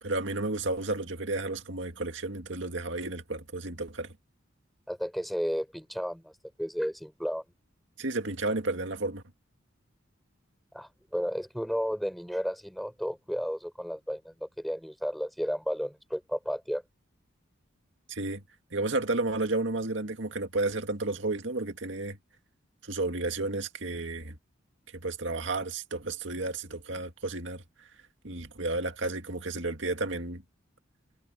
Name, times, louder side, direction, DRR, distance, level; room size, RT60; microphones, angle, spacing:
voice 1, 0.0-4.1 8.0-9.2 18.1-18.4 18.7-22.2 22.8-24.4 25.0-27.6 28.2-30.4, right 2 dB, 65° right, 2.1 m, -32 dB
voice 2, 4.9-6.3 6.6-7.4 10.7-16.8, equal, ahead, 6.7 m, -33 dB
head